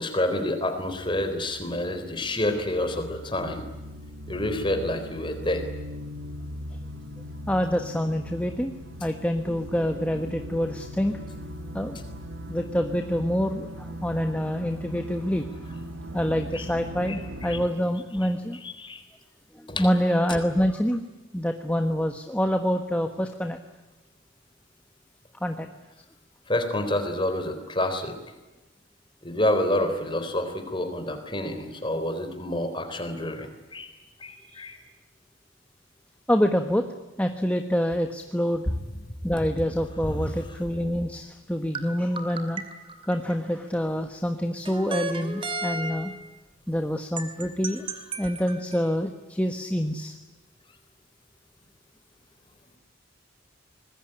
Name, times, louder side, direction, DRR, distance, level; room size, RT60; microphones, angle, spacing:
voice 1, 0.0-3.6 4.3-5.7 16.5-16.7 17.1-17.6 18.2-18.3 18.6-19.0 19.7-19.9 26.5-28.2 29.2-33.9 34.2-34.8, left 1 dB, 25° left, 8 dB, 3.9 m, -28 dB
sound 1, 0.9-17.7, equal, 80° right, 1.9 m, -39 dB
voice 2, 7.5-11.2 11.7-12.0 12.5-15.5 16.1-18.6 19.5-21.0 21.3-23.6 25.4-25.7 34.5-34.6 36.3-36.9 37.2-38.7 39.2-42.6 43.1-46.1 46.7-47.8 48.2-50.1, equal, 5° left, 5 dB, 1.3 m, -26 dB
sound 2, 41.7-43.7 44.6-46.3 47.2-48.9, right 2 dB, 25° right, 2.5 m, -34 dB
25.5 x 20.5 x 9.9 m, 1.1 s
head